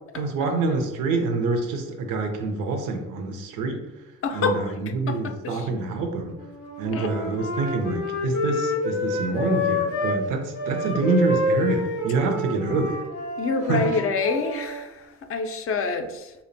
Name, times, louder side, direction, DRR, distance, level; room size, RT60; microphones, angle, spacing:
voice 1, 0.1-3.8 4.3-6.4 6.8-13.0 13.7-13.8, right 3 dB, 85° right, 4 dB, 0.5 m, -26 dB
voice 2, 4.2-4.6 5.1-5.7 6.9-7.1 13.4-16.3, left 4 dB, 45° left, 6 dB, 0.4 m, -27 dB
Wind instrument woodwind instrument, 6.3-10.2 10.5-14.8, left 2 dB, 85° left, 0.6 m, -28 dB
2.5 x 2.0 x 2.5 m, 1.0 s
supercardioid pair, 60°, 31 cm